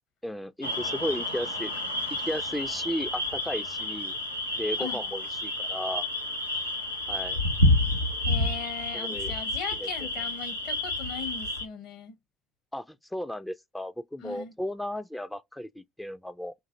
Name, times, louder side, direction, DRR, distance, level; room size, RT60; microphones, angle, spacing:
voice 1, 0.2-1.7 2.2-4.2 4.6-6.1 7.1-7.4 8.9-9.3 9.8-9.9 12.7-16.5, left 1 dB, 5° left, 0.3 m, -34 dB
sound 1, 0.6-11.7, left 1 dB, 90° left, 0.5 m, -29 dB
voice 2, 8.2-12.2 14.2-14.5, left 6 dB, 60° left, 1.1 m, -39 dB
4.0 x 2.5 x 2.6 m
figure-of-eight pair, 55°, 0 cm